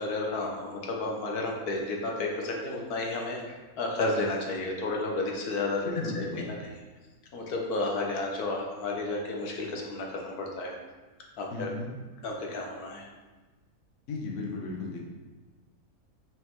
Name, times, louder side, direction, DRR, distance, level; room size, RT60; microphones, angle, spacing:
voice 1, 0.0-6.5 7.3-10.7 11.4-11.7 12.2-13.1, left 2 dB, 85° left, 0 dB, 1.5 m, -32 dB
voice 2, 5.8-6.5 11.5-11.9 14.1-15.0, left 3 dB, 55° left, -1 dB, 1.2 m, -35 dB
5.6 x 4.6 x 3.7 m, 1.3 s
omnidirectional pair, 1.6 m